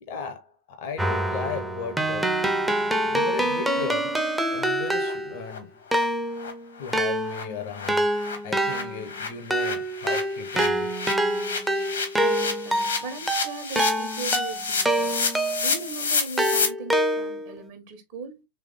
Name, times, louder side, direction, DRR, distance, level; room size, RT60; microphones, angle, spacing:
voice 1, 0.0-2.4 3.0-4.2 4.5-5.8 6.8-8.1 8.4-11.0, left 5 dB, 50° left, 0.7 m, -36 dB
Keyboard (musical), 1.0-5.5 5.9-15.8 16.4-17.6, right 1 dB, 5° right, 0.6 m, -26 dB
sound 1, 3.7-3.8 4.1-4.2 4.6-4.7 5.0-5.1 5.5-5.6 5.9-6.0 6.4-6.5 6.8-16.7, left 5 dB, 70° left, 1.1 m, -30 dB
voice 2, 12.2-15.2 15.6-18.5, right 4 dB, 55° right, 1.2 m, -38 dB
3.4 x 3.3 x 3.3 m
figure-of-eight pair, 90°, 0 cm